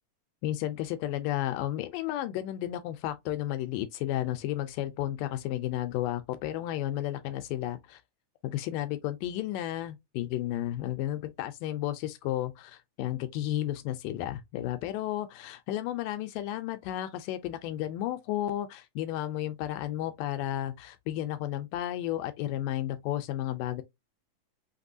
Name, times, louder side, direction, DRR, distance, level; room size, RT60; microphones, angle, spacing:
voice 1, 0.4-8.0 8.4-23.8, left 13 dB, 85° left, 2.2 m, -33 dB
5.9 x 2.9 x 2.6 m
omnidirectional pair, 3.9 m